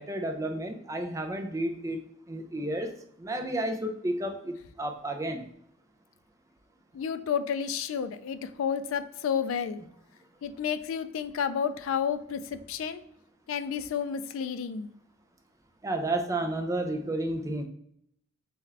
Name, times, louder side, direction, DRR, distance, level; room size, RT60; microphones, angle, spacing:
voice 1, 0.0-2.0 2.3-5.5 15.8-17.6, right 1 dB, 15° right, 5 dB, 0.4 m, -32 dB
voice 2, 6.9-9.8 10.4-13.0 13.5-14.9, left 7 dB, 65° left, 12 dB, 0.3 m, -31 dB
3.5 x 3.4 x 3.3 m, 0.71 s
head